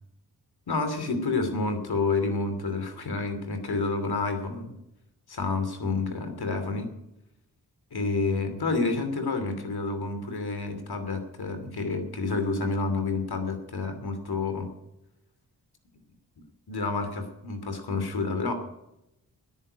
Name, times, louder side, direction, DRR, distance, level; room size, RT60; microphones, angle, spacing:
voice 1, 0.7-4.7 5.3-6.9 7.9-14.7 16.7-18.5, left 3 dB, 70° left, 8 dB, 2.9 m, -29 dB
10.0 x 9.7 x 9.9 m, 0.87 s
cardioid pair, 45°, 39 cm